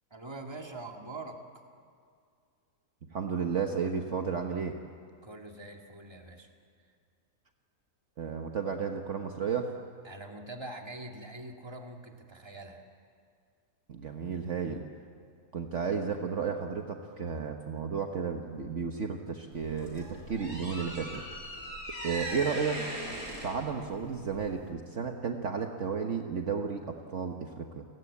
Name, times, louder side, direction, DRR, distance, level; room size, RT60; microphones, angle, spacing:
voice 1, 0.1-1.6 5.2-6.5 10.0-12.8, right 2 dB, 15° right, 2 dB, 2.1 m, -44 dB
voice 2, 3.1-4.8 8.2-9.7 13.9-14.8 15.5-21.2 22.0-22.8 23.4-27.9, right 6 dB, 55° right, 4 dB, 1.4 m, -33 dB
sound 1, 19.5-24.7, right 1 dB, 70° right, 5.4 m, -40 dB
30.0 x 19.0 x 8.5 m, 2.2 s
omnidirectional pair, 1.6 m